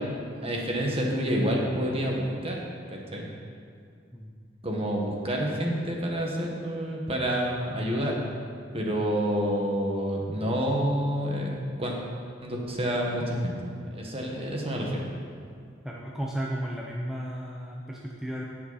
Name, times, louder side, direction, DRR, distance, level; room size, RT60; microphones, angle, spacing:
voice 1, 0.4-2.6 2.9-3.3 4.6-8.3 8.7-11.5 11.8-11.9 12.4-13.5 13.9-15.1, equal, 30° right, -1 dB, 1.6 m, -28 dB
voice 2, 15.8-18.4, equal, 5° right, -3 dB, 0.7 m, -34 dB
17.0 x 5.9 x 4.2 m, 2.2 s
head